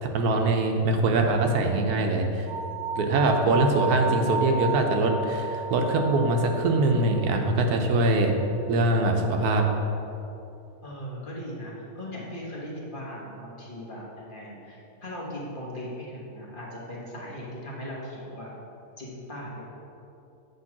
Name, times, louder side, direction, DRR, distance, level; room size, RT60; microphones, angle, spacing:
voice 1, 0.0-2.5 2.9-8.3 8.7-9.6, right 2 dB, 85° right, 3 dB, 1.2 m, -23 dB
sound 1, 2.5-7.6, right 3 dB, 50° right, 1.1 m, -33 dB
voice 2, 10.8-18.5 19.0-19.6, equal, 35° left, -5 dB, 1.2 m, -38 dB
7.9 x 3.0 x 5.9 m, 2.8 s
omnidirectional pair, 1.6 m